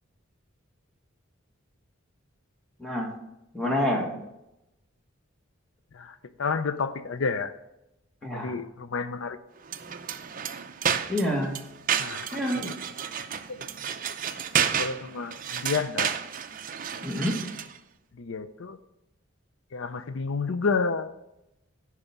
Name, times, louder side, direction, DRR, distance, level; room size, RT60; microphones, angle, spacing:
voice 1, 2.8-3.1 3.5-4.1 8.2-8.6 11.1-11.6 12.3-12.7 17.0-17.4, left 1 dB, 5° left, 0 dB, 1.8 m, -27 dB
voice 2, 5.9-7.5 8.2-9.4 12.0-12.3 12.5-12.7 13.5-13.7 14.6-16.1 18.2-18.8 19.7-21.1, left 4 dB, 80° left, 12 dB, 0.6 m, -30 dB
sound 1, 9.6-17.8, right 8 dB, 45° right, 0.6 m, -31 dB
10.5 x 4.9 x 7.2 m, 0.88 s
head